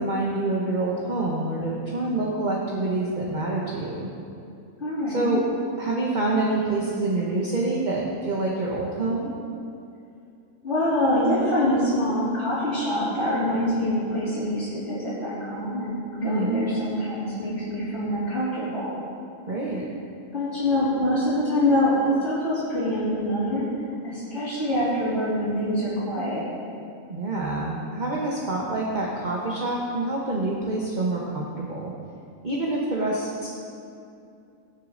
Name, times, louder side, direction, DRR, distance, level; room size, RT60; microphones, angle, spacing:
voice 1, 0.0-4.1 5.1-5.4 5.8-9.3 16.2-16.6 19.5-19.9 27.1-31.9 32.4-33.5, right 2 dB, 35° right, -3 dB, 1.1 m, -27 dB
voice 2, 4.8-5.4 10.6-19.0 20.3-23.7 24.0-26.5 26.8-26.9, left 1 dB, 50° left, -13 dB, 3.5 m, -25 dB
19.0 x 6.7 x 3.8 m, 2.5 s
omnidirectional pair, 1.4 m